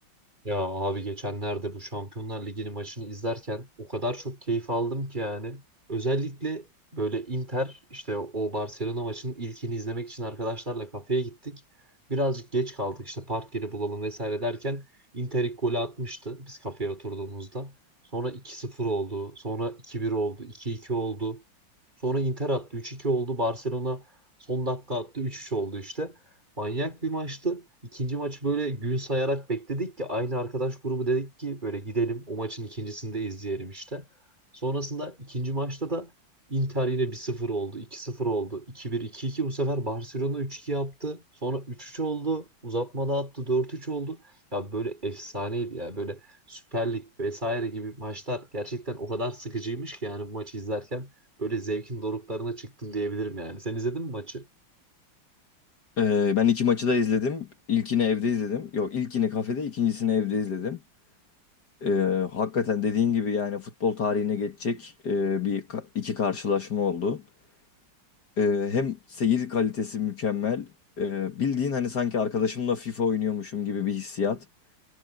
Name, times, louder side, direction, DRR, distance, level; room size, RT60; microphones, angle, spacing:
voice 1, 0.4-5.6 5.9-6.7 6.9-11.6 12.1-14.9 15.1-17.7 18.1-21.4 22.0-24.0 24.5-26.2 26.6-34.0 34.6-36.1 36.5-44.2 44.5-46.2 46.5-51.1 51.4-54.5, right 2 dB, 20° right, 3.7 m, -31 dB
voice 2, 56.0-60.8 61.8-67.2 68.4-70.7 71.0-74.5, left 6 dB, 55° left, 2.4 m, -26 dB
omnidirectional pair, 2.2 m